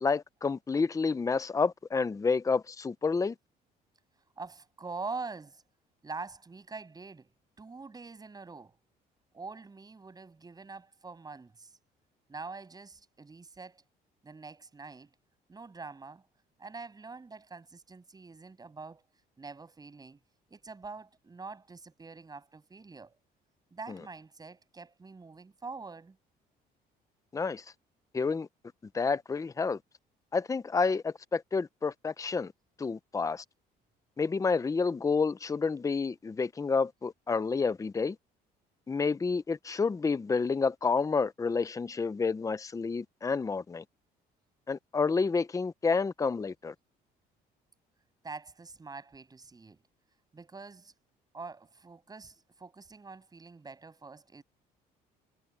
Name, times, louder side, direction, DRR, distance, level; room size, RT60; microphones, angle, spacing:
voice 1, 0.0-3.3 27.3-27.6 28.1-28.5 28.9-29.8 30.3-32.5 32.8-33.4 34.2-38.2 38.9-43.8 44.7-46.7, left 4 dB, 20° left, 0.8 m, -29 dB
voice 2, 4.4-5.6 6.0-7.3 7.6-8.8 9.3-11.8 12.3-13.8 14.2-15.1 15.5-16.2 16.6-19.0 19.4-20.2 20.5-23.2 23.7-26.2 48.2-49.8 50.3-50.9 51.3-54.4, right 4 dB, 25° right, 7.9 m, -45 dB
cardioid pair, 110°, 17 cm